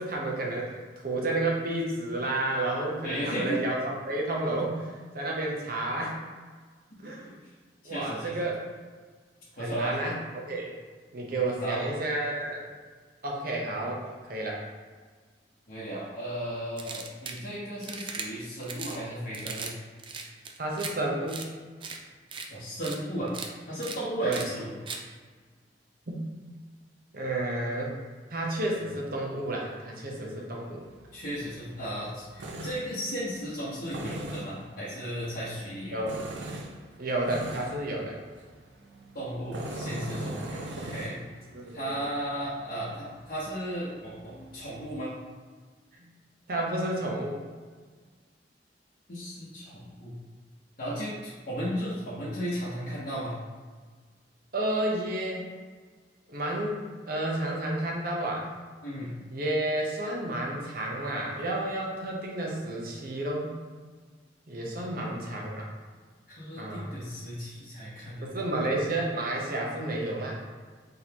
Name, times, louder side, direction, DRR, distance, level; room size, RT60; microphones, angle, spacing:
voice 1, 0.0-6.2 7.0-7.3 7.8-8.6 9.6-10.7 11.1-12.6 13.2-14.0 14.3-14.6 20.6-21.4 24.2-24.4 26.1-26.2 27.1-27.9 28.3-30.8 35.9-36.2 37.0-38.2 41.5-42.0 46.0-46.1 46.5-47.4 54.5-55.5 56.3-56.8 57.1-58.5 59.3-63.6 64.5-65.7 66.6-66.9 68.2-70.4, right 1 dB, 55° right, -1 dB, 0.9 m, -31 dB
voice 2, 3.0-3.6 7.0-7.3 7.8-8.3 9.6-10.0 11.3-11.9 14.0-14.1 15.7-19.7 20.2-20.3 22.5-23.3 23.7-24.7 31.1-36.1 39.1-41.2 41.7-45.1 49.1-50.2 50.8-53.3 58.8-59.1 64.8-64.9 66.3-68.4, equal, 55° left, -9 dB, 1.0 m, -35 dB
sound 1, 16.8-17.4 17.8-18.3 18.6-19.0 19.3-19.7 20.0-20.9 21.3-21.5 21.8-22.0 22.3-22.5 22.8-23.0 23.3-23.5 23.8-24.0 24.3-24.5 24.9-25.0, right 5 dB, 30° right, 0.4 m, -38 dB
Tools, 30.8-44.9, right 1 dB, 85° right, 0.5 m, -42 dB
4.3 x 3.9 x 2.9 m, 1.5 s
head